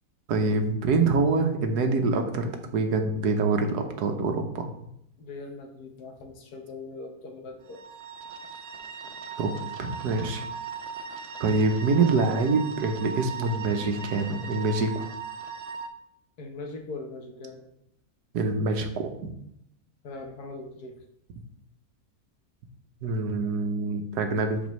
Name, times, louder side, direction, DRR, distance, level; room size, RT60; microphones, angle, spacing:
voice 1, 0.3-4.7 9.4-10.4 11.4-15.1 18.3-19.1 23.0-24.6, right 3 dB, 80° right, 5 dB, 1.4 m, -25 dB
voice 2, 5.2-7.8 16.4-17.7 20.0-20.9, left 3 dB, 70° left, 4 dB, 1.6 m, -40 dB
sound 1, 7.7-15.9, right 5 dB, 55° right, 0.8 m, -38 dB
12.0 x 4.6 x 3.1 m, 0.76 s
omnidirectional pair, 1.7 m